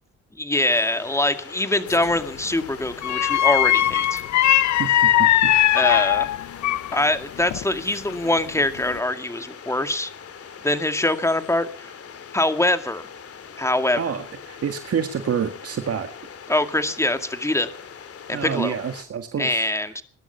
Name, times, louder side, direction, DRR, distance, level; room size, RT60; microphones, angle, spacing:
voice 1, 0.4-4.2 5.7-6.3 6.9-10.1 10.6-11.9 12.3-13.0 13.6-14.2 16.5-17.7 18.3-18.7 19.4-20.0, left 1 dB, 10° left, 9 dB, 2.2 m, -23 dB
sound 1, 0.7-19.0, left 7 dB, 50° left, 2.7 m, -42 dB
sound 2, 1.9-2.2 3.0-7.1 7.4-8.4 8.8-9.0, left 12 dB, 65° left, 0.8 m, -20 dB
voice 2, 14.0-16.1 18.3-19.7, right 7 dB, 50° right, 7 dB, 2.0 m, -27 dB
21.5 x 11.5 x 5.8 m, 0.41 s
cardioid pair, 90°, 30 cm